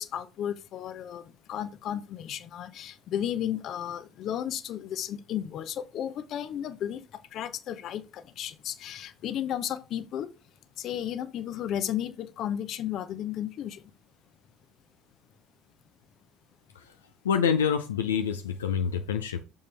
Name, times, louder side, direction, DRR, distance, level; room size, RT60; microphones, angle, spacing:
voice 1, 0.0-7.0 7.3-10.3 10.8-13.8, left 10 dB, 50° left, 0.8 m, -34 dB
voice 2, 17.2-19.4, left 7 dB, 85° left, 0.5 m, -26 dB
6.8 x 5.4 x 3.4 m
hypercardioid pair, 65°, 0 cm